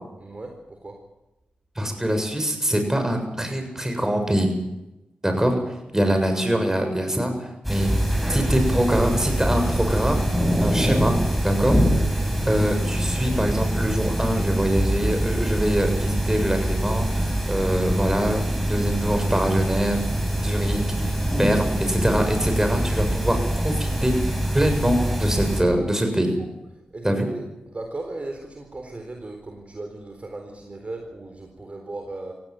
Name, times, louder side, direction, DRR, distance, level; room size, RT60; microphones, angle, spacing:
voice 1, 0.2-1.0 5.9-6.1 26.9-32.3, right 2 dB, 40° right, 4 dB, 4.0 m, -37 dB
voice 2, 1.8-4.5 5.2-5.6 5.9-7.9 8.3-10.2 10.6-11.2 11.4-11.8 12.1-12.2 12.5-18.4 18.7-20.0 20.4-23.4 23.6-26.4 27.0-27.3, right 1 dB, 15° right, 5 dB, 7.1 m, -24 dB
sound 1, 7.6-25.6, right 1 dB, ahead, 7.3 m, -24 dB
18.5 x 16.0 x 9.0 m, 0.96 s
supercardioid pair, 40°, 3 cm